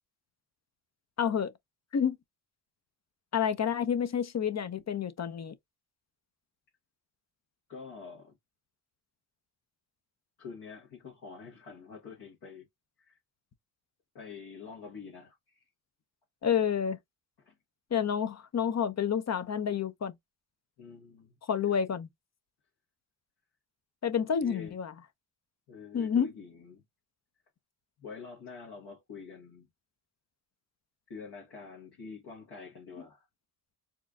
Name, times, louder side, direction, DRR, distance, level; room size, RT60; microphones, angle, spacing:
voice 1, 1.2-1.5 1.9-2.2 3.3-5.5 16.4-17.0 17.9-20.1 21.5-22.1 24.0-24.9 25.9-26.3, left 7 dB, 40° left, 0.7 m, -29 dB
voice 2, 7.7-8.3 10.4-12.7 13.0-13.2 14.1-15.6 17.4-17.6 20.8-21.4 24.3-24.8 25.7-26.8 28.0-29.7 31.1-33.3, left 5 dB, 65° left, 1.3 m, -46 dB
4.4 x 2.5 x 2.3 m
cardioid pair, 65°, 42 cm